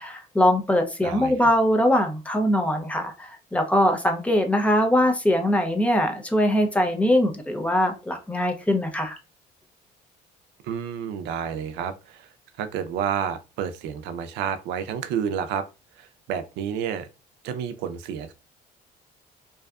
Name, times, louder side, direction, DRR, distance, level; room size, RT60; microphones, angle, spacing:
voice 1, 0.0-9.2, equal, 10° left, 0.5 m, -22 dB
voice 2, 1.0-1.5 10.6-12.3 12.6-15.6 16.0-17.1 17.4-18.3, right 8 dB, 90° right, 0.4 m, -30 dB
2.6 x 2.3 x 2.3 m
cardioid pair, 110°, 17 cm